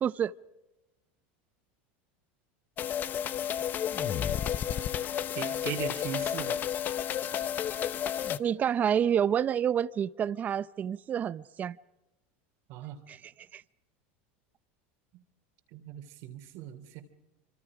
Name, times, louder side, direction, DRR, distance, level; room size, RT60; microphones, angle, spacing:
voice 1, 0.0-0.3 8.4-11.8 13.1-13.2 13.5-13.6, right 8 dB, 25° right, 0.7 m, -28 dB
sound 1, 2.8-8.4, left 9 dB, 30° left, 0.8 m, -31 dB
voice 2, 4.6-4.9 5.3-6.6 12.7-13.0 15.7-17.0, right 10 dB, 55° right, 3.1 m, -39 dB
27.5 x 26.0 x 5.0 m
supercardioid pair, 140°, 6 cm